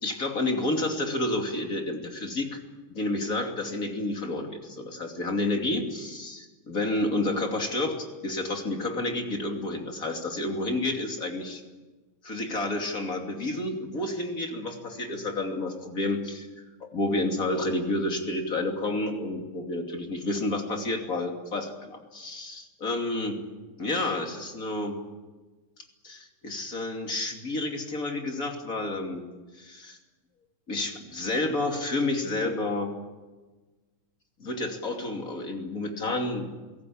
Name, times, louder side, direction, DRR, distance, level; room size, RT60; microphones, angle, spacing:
voice 1, 0.0-2.6 2.9-11.6 12.2-16.5 16.8-23.4 23.8-25.0 26.0-29.3 29.5-30.0 30.7-32.9 34.4-36.5, left 2 dB, 40° left, 3 dB, 3.2 m, -30 dB
29.0 x 17.5 x 8.7 m, 1.3 s
omnidirectional pair, 2.3 m